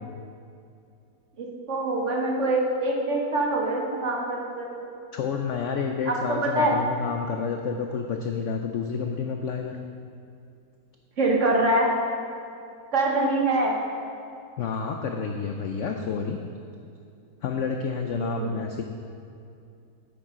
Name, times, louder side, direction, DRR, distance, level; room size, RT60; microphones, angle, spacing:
voice 1, 1.4-4.9 6.0-6.7 11.2-11.9 12.9-13.8 18.1-18.5, right 2 dB, 50° right, -1 dB, 1.3 m, -24 dB
voice 2, 5.1-9.8 14.6-16.4 17.4-18.8, left 5 dB, 75° left, 4 dB, 0.6 m, -29 dB
10.0 x 8.8 x 3.7 m, 2.5 s
omnidirectional pair, 1.9 m